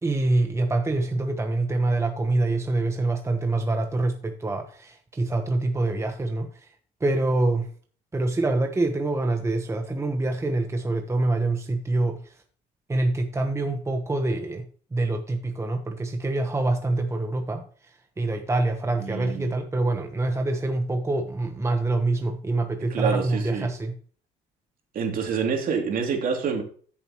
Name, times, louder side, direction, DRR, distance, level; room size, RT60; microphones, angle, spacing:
voice 1, 0.0-6.7 7.0-7.7 8.1-12.3 12.9-14.6 14.9-23.9, right 2 dB, 15° right, 5 dB, 1.1 m, -25 dB
voice 2, 19.0-19.5 22.9-23.7 24.9-26.6, right 6 dB, 55° right, 2 dB, 3.0 m, -27 dB
13.5 x 7.2 x 3.1 m, 0.44 s
cardioid pair, 110°, 17 cm